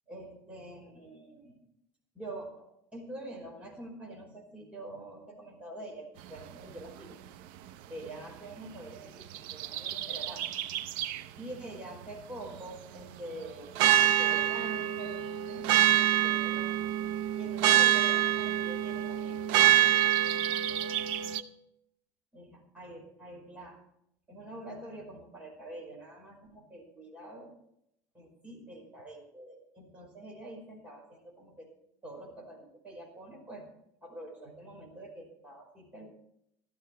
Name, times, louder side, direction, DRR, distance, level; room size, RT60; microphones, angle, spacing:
voice 1, 0.1-1.5 2.1-7.2 7.9-10.5 11.4-16.9 17.3-21.4 22.3-23.8 24.3-27.5 28.1-31.7 32.0-33.7 34.0-36.1, right 1 dB, 10° right, -1 dB, 5.2 m, -46 dB
sound 1, 9.2-11.2 13.8-21.4, right 12 dB, 65° right, 0.8 m, -26 dB
15.5 x 12.0 x 4.6 m, 0.76 s
cardioid pair, 155°, 10 cm